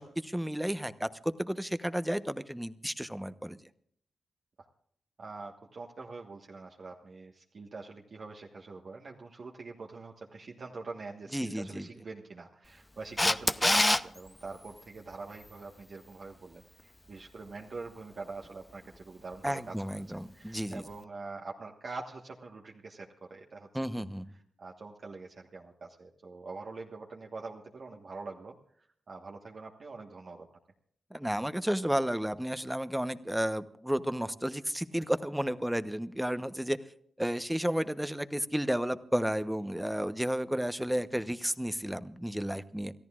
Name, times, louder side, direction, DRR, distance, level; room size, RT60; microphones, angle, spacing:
voice 1, 0.0-3.6 11.3-11.9 19.4-20.9 23.7-24.3 31.1-36.8 37.2-42.9, equal, 5° right, 12 dB, 0.9 m, -32 dB
voice 2, 5.2-23.7 23.9-24.0 24.3-30.5, right 3 dB, 60° right, -1 dB, 1.4 m, -44 dB
Camera, 13.2-14.0 20.7-20.8, left 1 dB, 15° left, 0.6 m, -24 dB
28.5 x 14.0 x 2.5 m, 0.65 s
supercardioid pair, 50°, 0 cm